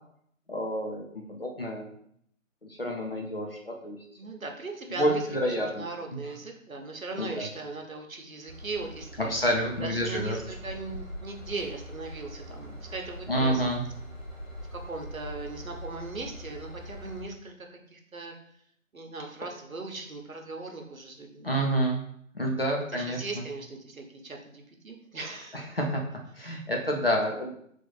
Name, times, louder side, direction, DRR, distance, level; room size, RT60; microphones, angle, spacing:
voice 1, 0.5-1.9 2.6-4.0 5.0-5.8 6.1-6.3 7.2-7.5 9.2-10.4 13.3-13.8 21.4-22.0 22.3-23.4 25.5-26.0 26.4-27.5, equal, 45° left, 0 dB, 0.7 m, -28 dB
voice 2, 4.2-5.2 5.6-9.3 9.8-13.7 14.7-18.3 18.9-21.5 22.9-25.6, right 3 dB, 80° right, 3 dB, 1.0 m, -39 dB
Train / Engine, 8.5-17.2, equal, 80° left, 1.4 m, -42 dB
3.3 x 2.7 x 3.9 m, 0.68 s
figure-of-eight pair, 170°, 40 cm